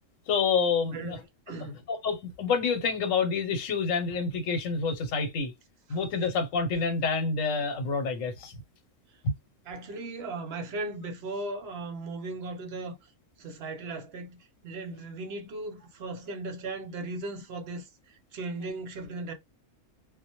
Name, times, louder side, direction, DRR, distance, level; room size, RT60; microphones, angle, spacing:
voice 1, 0.3-1.2 1.9-5.5 5.9-8.6, left 5 dB, 80° left, 1.1 m, -28 dB
voice 2, 0.9-1.8 9.7-13.0 13.4-17.9 18.3-19.3, right 2 dB, 60° right, 0.8 m, -37 dB
2.1 x 2.1 x 2.8 m
omnidirectional pair, 1.3 m